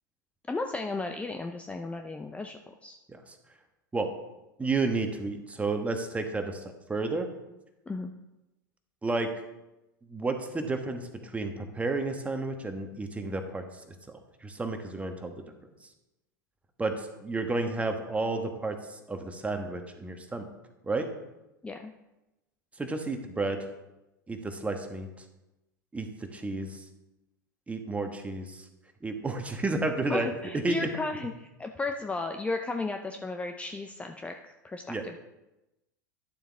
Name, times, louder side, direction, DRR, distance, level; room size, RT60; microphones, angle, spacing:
voice 1, 0.5-3.0 7.9-8.1 21.6-21.9 30.1-35.2, left 3 dB, 10° left, 5 dB, 0.6 m, -34 dB
voice 2, 4.6-6.6 6.9-7.3 9.0-9.3 10.1-13.6 14.1-15.4 16.8-20.5 20.8-21.1 22.8-23.6 24.3-25.1 25.9-26.8 27.7-28.6 29.0-30.3 30.6-30.9 34.9-35.0, right 3 dB, 10° right, 5 dB, 1.3 m, -31 dB
11.5 x 7.1 x 3.6 m, 0.98 s
hypercardioid pair, 90°, 11 cm